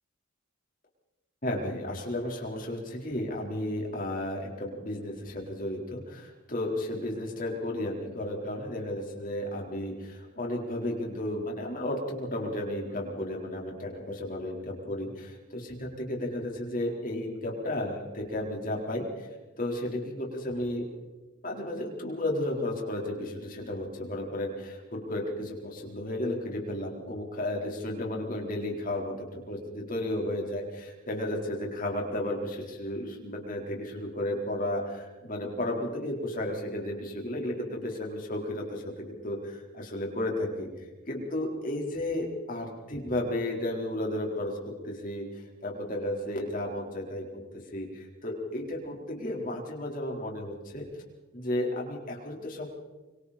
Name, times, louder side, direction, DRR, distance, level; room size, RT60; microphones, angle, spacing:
voice 1, 1.4-19.3 19.6-20.8 21.4-40.7 41.1-47.3 47.7-50.9 51.3-52.8, left 1 dB, 40° left, 0 dB, 4.4 m, -33 dB
25.0 x 24.5 x 4.4 m, 1.2 s
head